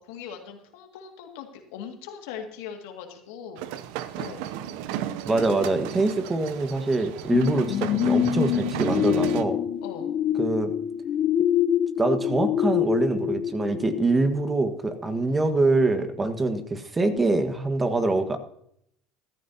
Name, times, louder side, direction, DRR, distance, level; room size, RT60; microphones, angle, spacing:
voice 1, 0.0-3.6 4.2-4.5 9.8-10.1, left 7 dB, 80° left, 3 dB, 2.2 m, -40 dB
sound 1, 3.6-9.4, right 12 dB, 75° right, 0.7 m, -34 dB
voice 2, 5.2-9.6 10.4-10.7 12.0-18.4, right 2 dB, 20° right, 7 dB, 1.6 m, -24 dB
sound 2, 7.3-14.7 15.2-15.3, left 10 dB, 50° left, 0.6 m, -25 dB
15.0 x 13.0 x 2.9 m, 0.71 s
supercardioid pair, 85°, 0 cm